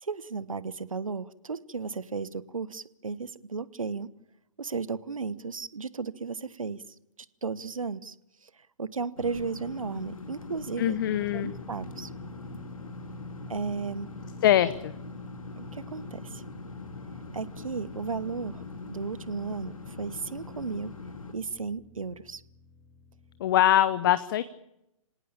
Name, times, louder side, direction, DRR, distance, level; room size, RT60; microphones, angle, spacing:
voice 1, 0.0-4.1 4.6-6.8 7.4-8.1 8.8-11.0 11.3-12.1 13.5-14.1 15.6-16.4 17.3-18.6 18.9-19.7 20.0-20.9 21.3-22.4, right 5 dB, 70° right, 18 dB, 1.1 m, -34 dB
sound 1, 9.2-21.3, left 4 dB, 75° left, 2.4 m, -42 dB
voice 2, 10.8-11.5 14.4-14.9 23.4-24.4, left 12 dB, 40° left, 14 dB, 0.8 m, -23 dB
sound 2, 11.1-23.9, right 4 dB, 10° left, 2.3 m, -50 dB
26.5 x 18.0 x 8.7 m, 0.86 s
figure-of-eight pair, 125°, 18 cm